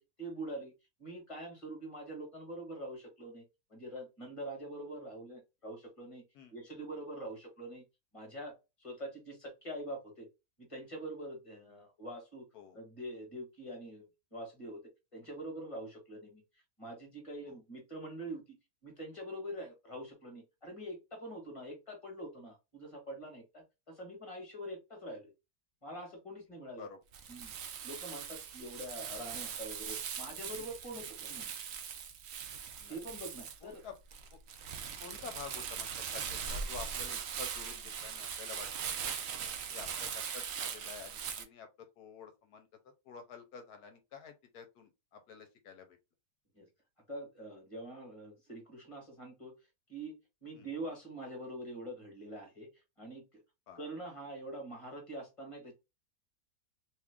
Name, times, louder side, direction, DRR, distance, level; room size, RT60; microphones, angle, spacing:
voice 1, 0.2-0.7 1.0-3.4 3.7-6.2 6.5-7.8 8.1-8.5 8.8-10.3 10.6-12.4 12.7-14.0 14.3-14.8 15.1-16.4 16.8-18.6 18.8-25.3 25.8-26.8 27.3-27.5 27.8-31.5 32.9-33.8 46.6-46.7 47.1-49.5 49.9-52.7 53.0-53.2 53.7-55.7, right 1 dB, 20° left, 1.3 m, -44 dB
Crumpling crinkling, 27.1-41.4, right 7 dB, 85° right, 0.5 m, -40 dB
voice 2, 33.6-33.9 35.0-38.7 39.0-39.3 39.7-41.7 42.0-42.7 43.1-45.9 50.5-50.7 53.7-53.8, left 6 dB, 70° left, 1.1 m, -49 dB
2.9 x 2.4 x 3.4 m
omnidirectional pair, 1.8 m